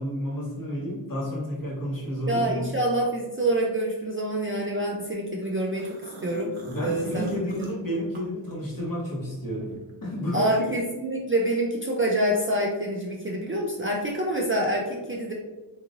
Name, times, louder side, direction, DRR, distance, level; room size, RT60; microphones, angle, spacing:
voice 1, 0.0-2.6 6.7-9.7 10.0-10.7, equal, 45° left, -4 dB, 1.2 m, -31 dB
voice 2, 2.3-5.9 6.2-6.5 6.8-7.7 10.3-15.3, right 1 dB, 30° right, -2 dB, 0.3 m, -26 dB
sound 1, 5.4-9.0 9.3-10.8, right 1 dB, 75° right, 0.9 m, -45 dB
3.6 x 3.0 x 2.5 m, 1.2 s
wide cardioid pair, 150°, 49 cm